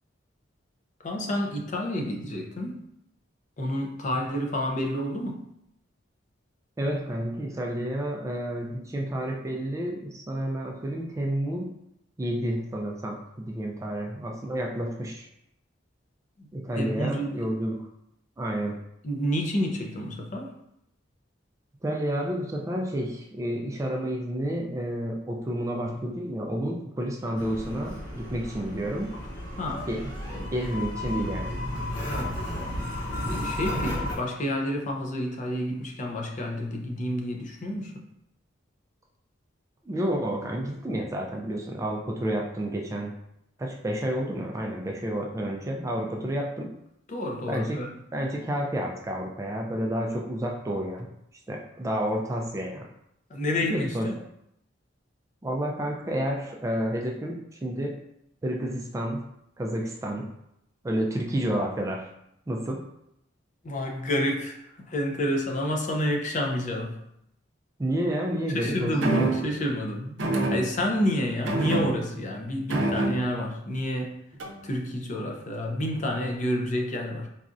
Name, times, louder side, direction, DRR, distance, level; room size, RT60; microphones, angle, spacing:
voice 1, 1.0-2.8 3.6-5.4 16.4-16.5 16.8-17.5 19.0-20.5 29.6-29.9 30.3-30.5 32.1-38.0 47.1-47.9 53.3-54.1 63.6-64.6 64.9-67.0 68.5-70.2 70.5-74.1 74.6-77.3, equal, 40° left, 1 dB, 0.5 m, -29 dB
voice 2, 6.8-11.7 12.2-15.3 16.5-17.8 18.4-18.8 21.8-29.1 29.9-30.0 30.5-31.6 39.9-43.1 43.6-46.7 47.5-47.8 48.1-51.1 51.5-52.9 53.6-54.1 55.4-58.0 58.4-59.3 59.6-60.3 60.8-62.0 62.5-62.8 67.8-69.4, right 1 dB, 15° right, 0 dB, 0.3 m, -30 dB
sound 1, 27.4-34.1, left 1 dB, 75° left, 1.0 m, -33 dB
sound 2, 69.0-69.6 70.2-71.0 71.5-72.3 72.7-73.5 74.4-74.7, right 2 dB, 80° right, 0.6 m, -27 dB
4.0 x 2.3 x 2.5 m, 0.78 s
head